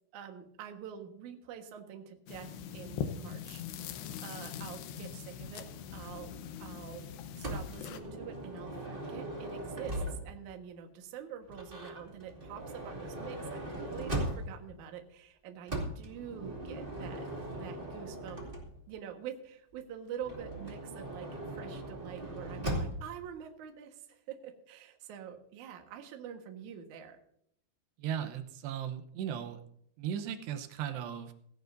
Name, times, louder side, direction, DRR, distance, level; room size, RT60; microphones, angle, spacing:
voice 1, 0.1-3.6 4.2-5.6 5.9-6.3 6.6-7.1 7.4-17.3 17.6-18.4 18.9-27.2, right 8 dB, 60° right, 4 dB, 2.5 m, -46 dB
sound 1, 2.3-8.0, left 8 dB, 85° left, 3.1 m, -42 dB
Motor vehicle (road) / Sliding door, 7.4-10.5 11.5-14.7 15.7-19.0 20.2-23.2, right 1 dB, 20° right, 1.8 m, -39 dB
voice 2, 28.0-29.6 30.0-31.3, right 9 dB, 85° right, 8 dB, 3.1 m, -37 dB
17.0 x 15.5 x 2.7 m, 0.70 s
omnidirectional pair, 4.7 m